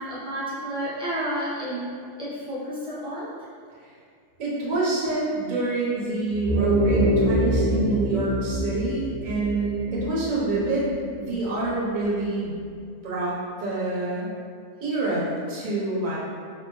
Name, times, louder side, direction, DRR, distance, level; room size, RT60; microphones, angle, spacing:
voice 1, 0.0-3.3, equal, 5° right, -11 dB, 0.4 m, -31 dB
voice 2, 4.4-10.9 11.2-12.5 13.0-14.3 14.8-16.2, right 2 dB, 45° right, -6 dB, 0.6 m, -26 dB
sound 1, 6.3-11.1, equal, 90° right, 0.4 m, -25 dB
3.3 x 2.1 x 2.9 m, 2.2 s
omnidirectional pair, 1.6 m